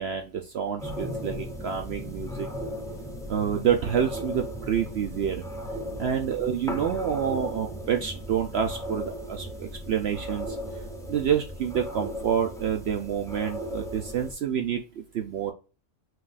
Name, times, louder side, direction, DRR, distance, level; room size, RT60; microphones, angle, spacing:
voice 1, 0.0-2.5 3.3-5.5 6.0-10.6 11.1-15.5, right 8 dB, 65° right, 4 dB, 0.6 m, -28 dB
sound 1, 0.8-14.3, equal, 5° left, 0.4 m, -36 dB
6.0 x 2.4 x 2.3 m, 0.34 s
omnidirectional pair, 1.5 m